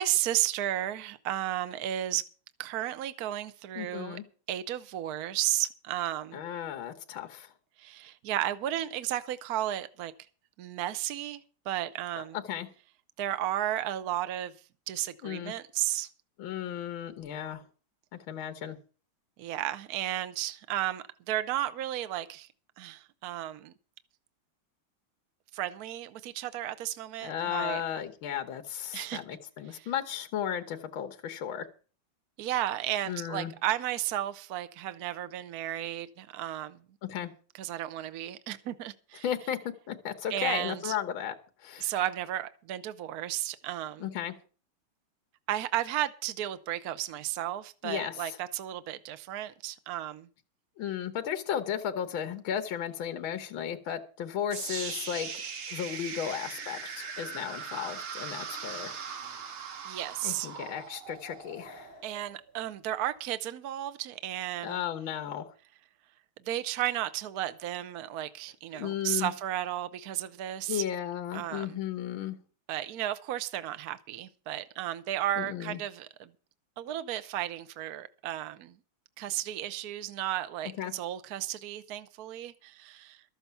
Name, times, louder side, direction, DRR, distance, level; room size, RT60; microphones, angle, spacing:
voice 1, 0.0-2.2 2.6-4.2 4.5-6.4 7.8-10.1 10.6-12.4 13.2-14.5 14.9-16.1 19.4-22.5 22.8-23.7 25.5-27.8 28.9-29.2 29.7-29.9 32.4-36.8 37.6-39.2 40.3-41.0 41.8-44.1 45.5-50.3 59.8-60.5 62.0-64.8 66.5-70.8 71.3-71.8 72.7-76.3 76.8-78.8 79.2-83.2, right 13 dB, 60° right, 1.1 m, -33 dB
voice 2, 3.8-4.2 6.3-7.5 12.2-12.7 15.2-15.5 16.4-17.6 18.1-18.8 27.2-31.7 33.1-33.5 37.1-37.3 39.2-41.4 41.6-41.9 44.0-44.3 47.8-48.4 50.8-55.3 55.7-59.0 60.2-61.9 64.6-65.5 68.7-69.3 70.7-72.4 75.4-75.8 80.8-80.9, left 9 dB, 75° left, 2.0 m, -35 dB
sound 1, 54.5-62.6, right 6 dB, 85° right, 2.6 m, -40 dB
13.0 x 7.9 x 7.0 m
omnidirectional pair, 2.3 m